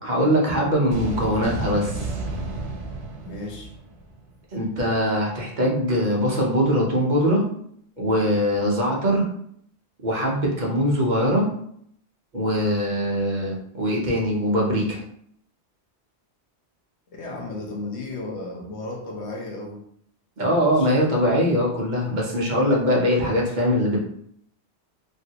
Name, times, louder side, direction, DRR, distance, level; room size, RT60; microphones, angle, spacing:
voice 1, 0.0-2.1 4.5-7.4 8.0-9.2 10.0-11.5 12.3-15.0 20.4-24.0, equal, 45° right, -3 dB, 0.8 m, -22 dB
sound 1, 0.9-4.3, right 2 dB, 90° right, 1.0 m, -32 dB
voice 2, 3.2-3.7 17.1-19.8 20.8-20.9, left 2 dB, 80° left, 0 dB, 1.1 m, -34 dB
3.1 x 2.7 x 2.8 m, 0.67 s
omnidirectional pair, 1.2 m